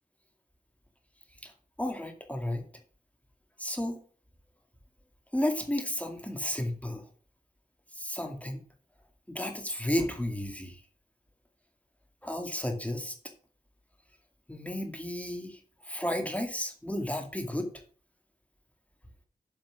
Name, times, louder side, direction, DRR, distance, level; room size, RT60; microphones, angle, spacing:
voice 1, 1.8-2.6 3.6-4.0 5.3-7.1 7.9-8.6 9.3-10.8 12.2-13.1 14.5-17.7, left 1 dB, 10° left, 4 dB, 2.2 m, -33 dB
7.4 x 7.2 x 5.9 m, 0.42 s
cardioid pair, 45°, 16 cm